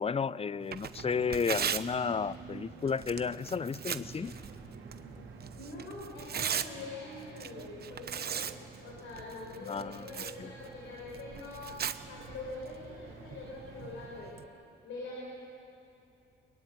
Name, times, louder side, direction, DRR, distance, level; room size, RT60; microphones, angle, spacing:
voice 1, 0.0-4.3 9.7-10.0 10.4-10.5, left 6 dB, 30° left, 19 dB, 0.6 m, -32 dB
Tearing, 0.6-14.4, right 8 dB, 55° right, 1.0 m, -40 dB
sound 1, 0.9-14.2, right 4 dB, 85° right, 3.6 m, -50 dB
voice 2, 5.5-8.5 8.8-14.4 14.8-15.2, left 2 dB, 90° left, -2 dB, 4.8 m, -44 dB
22.5 x 22.0 x 9.6 m, 2.8 s
cardioid pair, 75°, 20 cm